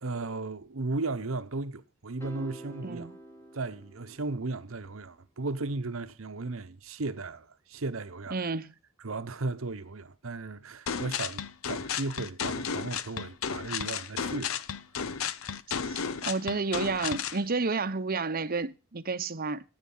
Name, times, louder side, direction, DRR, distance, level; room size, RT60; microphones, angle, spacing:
voice 1, 0.0-3.1 3.5-8.4 9.0-14.6, right 3 dB, 75° right, 1.0 m, -35 dB
sound 1, 2.2-4.6, right 1 dB, 15° left, 2.0 m, -47 dB
voice 2, 8.3-8.7 15.9-19.6, right 4 dB, 45° right, 0.9 m, -31 dB
sound 2, 10.9-17.4, left 7 dB, 75° left, 0.7 m, -33 dB
13.0 x 9.0 x 5.5 m
head